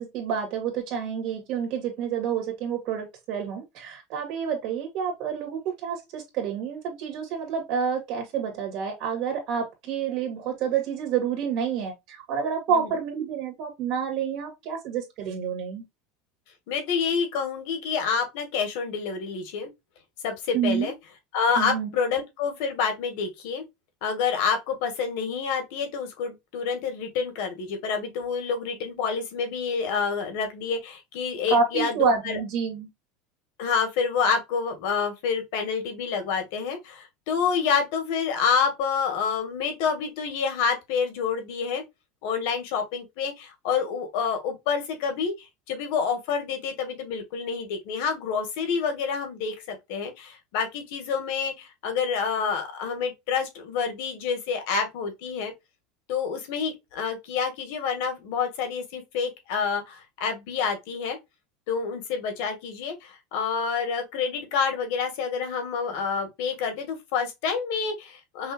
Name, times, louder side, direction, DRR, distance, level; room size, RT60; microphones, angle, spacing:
voice 1, 0.0-15.8 20.5-20.9 21.6-21.9 31.5-32.9, right 6 dB, 50° right, 1.9 m, -28 dB
voice 2, 16.7-19.7 20.2-20.9 21.3-23.6 24.0-32.4 33.6-41.8 42.2-55.5 56.1-61.2 61.7-68.5, left 6 dB, 65° left, 1.7 m, -28 dB
5.5 x 2.8 x 2.5 m
supercardioid pair, 150°, 0 cm